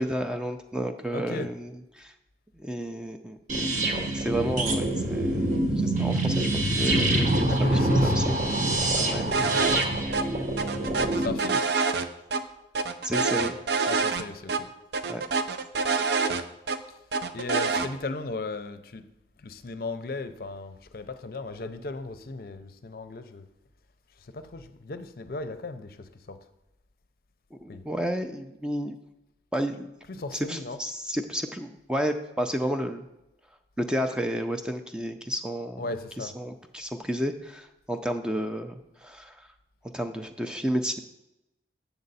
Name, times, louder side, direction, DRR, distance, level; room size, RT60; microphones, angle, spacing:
voice 1, 0.0-2.1 2.6-3.4 4.0-8.7 9.1-9.2 13.0-13.6 15.1-15.2 27.5-29.0 29.5-29.9 30.3-33.0 33.8-35.9 36.2-39.5 39.9-41.0, equal, 5° right, 0.4 m, -31 dB
voice 2, 1.1-1.5 7.5-8.1 8.9-9.6 11.0-11.6 13.9-14.7 17.3-19.0 19.4-23.4 24.3-26.4 27.7-27.8 30.1-30.8 35.8-36.3, left 3 dB, 55° left, 0.5 m, -36 dB
sound 1, 3.5-11.3, right 1 dB, 45° right, 0.9 m, -25 dB
sound 2, 9.3-9.9 10.1-10.2 10.6-12.4 12.7-14.2 14.5-14.6 14.9-16.8 17.1-17.9, right 4 dB, 65° right, 0.5 m, -26 dB
7.6 x 7.1 x 4.1 m
head